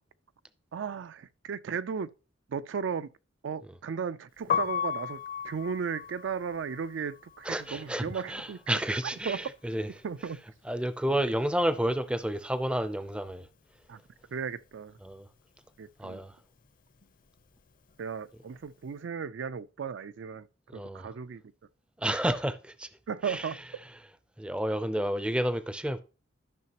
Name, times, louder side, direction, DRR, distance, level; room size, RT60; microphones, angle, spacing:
voice 1, 0.7-2.1 2.5-3.1 3.4-8.6 8.9-9.0 9.3-9.5 10.0-10.4 11.1-11.2 13.9-14.0 14.3-14.9 15.8-16.2 18.0-20.5 20.7-21.4 23.1-23.6, right 6 dB, 70° right, 0.4 m, -35 dB
Piano, 4.4-10.3 10.6-12.2 12.4-18.9, left 8 dB, 45° left, 0.6 m, -37 dB
voice 2, 7.4-10.0 10.6-13.5 15.0-15.3 16.0-16.3 20.7-21.1 22.0-22.9 23.2-23.5 24.4-26.0, right 1 dB, 5° right, 0.4 m, -31 dB
12.5 x 5.7 x 2.9 m
head